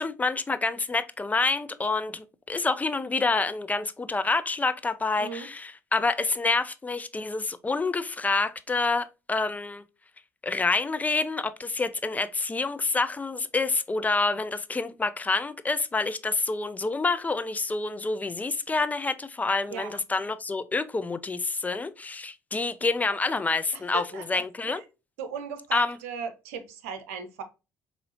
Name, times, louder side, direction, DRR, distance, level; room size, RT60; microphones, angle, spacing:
voice 1, 0.0-9.8 10.4-24.8 25.7-26.0, left 3 dB, 20° left, 0.5 m, -27 dB
voice 2, 23.7-24.8 25.2-27.4, right 6 dB, 80° right, 0.7 m, -37 dB
5.2 x 2.7 x 2.9 m
hypercardioid pair, 55°, 8 cm